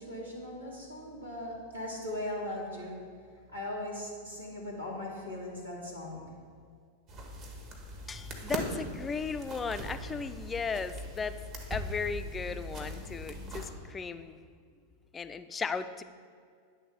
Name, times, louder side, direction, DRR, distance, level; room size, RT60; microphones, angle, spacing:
voice 1, 0.0-3.0 3.5-6.3, left 1 dB, 85° right, -5 dB, 1.9 m, -39 dB
sound 1, 7.1-13.7, right 1 dB, 35° right, 1.3 m, -40 dB
voice 2, 8.1-11.4 11.7-14.4 15.1-16.0, left 5 dB, 15° left, 11 dB, 0.4 m, -36 dB
10.0 x 3.6 x 6.8 m, 2.1 s
figure-of-eight pair, 90°, 0 cm